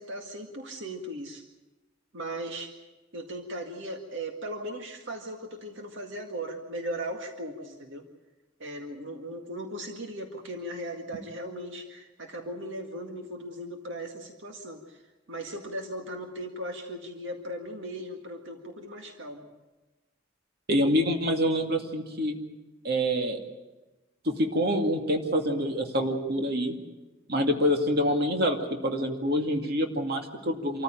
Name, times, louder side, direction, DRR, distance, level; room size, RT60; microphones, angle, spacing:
voice 1, 0.0-1.4 2.1-2.7 3.1-8.0 8.6-15.0 15.3-19.5, right 1 dB, 65° right, 3 dB, 2.0 m, -38 dB
voice 2, 20.7-22.4 22.8-23.4 24.3-26.7 27.3-28.6 28.8-30.8, equal, 50° right, 3 dB, 2.3 m, -26 dB
26.5 x 14.5 x 9.0 m, 1.1 s
head